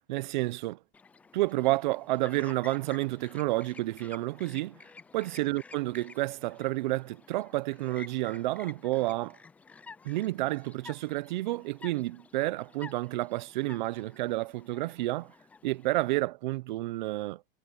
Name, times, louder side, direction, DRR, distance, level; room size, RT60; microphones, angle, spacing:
voice 1, 0.1-0.8 1.3-4.8 5.1-9.4 10.0-15.3 15.6-17.4, right 18 dB, 55° right, 0.7 m, -30 dB
Chirp tweet, 0.9-16.1, left 4 dB, 5° left, 0.4 m, -52 dB
supercardioid pair, 160°, 29 cm